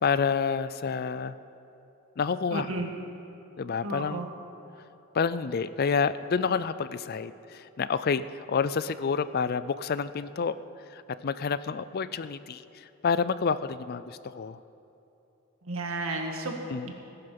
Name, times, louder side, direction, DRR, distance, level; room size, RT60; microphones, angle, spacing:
voice 1, 0.0-1.3 2.2-2.8 3.6-4.2 5.1-10.5 10.9-12.6 13.0-14.6 16.7-16.9, left 5 dB, 45° left, 14 dB, 0.4 m, -28 dB
voice 2, 2.5-2.9 3.8-4.3 15.6-16.6 16.8-16.9, right 2 dB, 75° right, 2 dB, 1.8 m, -32 dB
17.5 x 11.5 x 5.3 m, 2.9 s
head